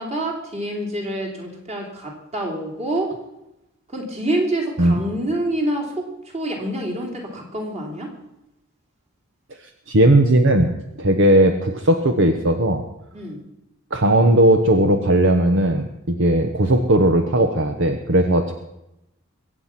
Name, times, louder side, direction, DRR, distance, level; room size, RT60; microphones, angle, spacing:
voice 1, 0.0-3.1 3.9-6.1 6.3-8.1 13.1-13.4, right 1 dB, 30° right, 0 dB, 3.0 m, -26 dB
voice 2, 9.9-10.7 11.0-12.8 13.9-18.5, right 1 dB, 55° right, 6 dB, 1.0 m, -17 dB
22.5 x 8.3 x 5.9 m, 0.89 s
head